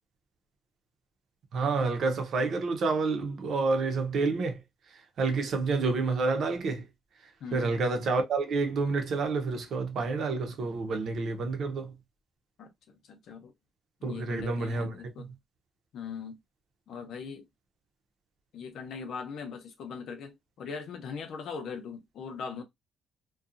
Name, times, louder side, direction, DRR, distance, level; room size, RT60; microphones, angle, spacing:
voice 1, 1.5-4.6 4.9-6.8 7.5-11.9 14.0-15.3, right 3 dB, 65° right, 0.7 m, -29 dB
voice 2, 13.1-13.5 14.0-15.3 15.9-16.4 16.9-17.4 18.5-22.6, left 5 dB, 70° left, 0.7 m, -40 dB
2.7 x 2.3 x 2.4 m
cardioid pair, 90°, 0 cm